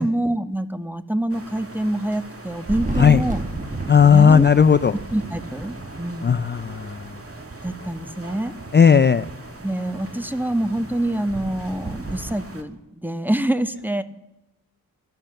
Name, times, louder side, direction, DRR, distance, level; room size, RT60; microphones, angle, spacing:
voice 1, 0.0-3.4 4.1-4.5 5.1-6.4 7.6-8.5 9.6-14.0, right 1 dB, 5° right, 11 dB, 1.0 m, -26 dB
sound 1, 1.3-12.6, right 2 dB, 35° right, 2.3 m, -41 dB
Thunder, 2.5-12.4, right 2 dB, 20° right, 1.3 m, -34 dB
voice 2, 3.9-4.9 6.2-7.0 8.7-9.2, left 7 dB, 30° left, 13 dB, 0.5 m, -14 dB
17.0 x 12.0 x 6.6 m, 0.96 s
cardioid pair, 60°, 38 cm